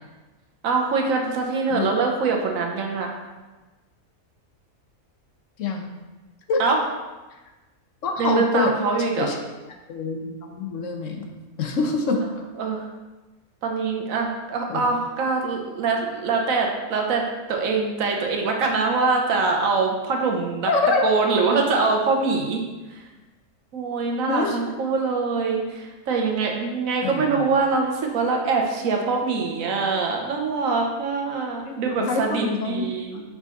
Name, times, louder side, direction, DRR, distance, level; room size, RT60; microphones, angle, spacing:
voice 1, 0.6-3.1 6.6-6.8 8.2-9.3 12.2-12.3 12.6-12.8 13.6-17.2 17.5-20.7 21.0-22.6 23.7-33.2, right 4 dB, 65° right, 1 dB, 1.3 m, -24 dB
voice 2, 8.0-8.7 9.2-9.4 9.9-11.3 11.6-12.3 14.7-14.9 20.7-21.1 24.3-24.6 27.0-27.4 31.6-32.8, left 3 dB, 65° left, 3 dB, 1.0 m, -25 dB
5.4 x 5.0 x 3.8 m, 1.2 s
omnidirectional pair, 1.5 m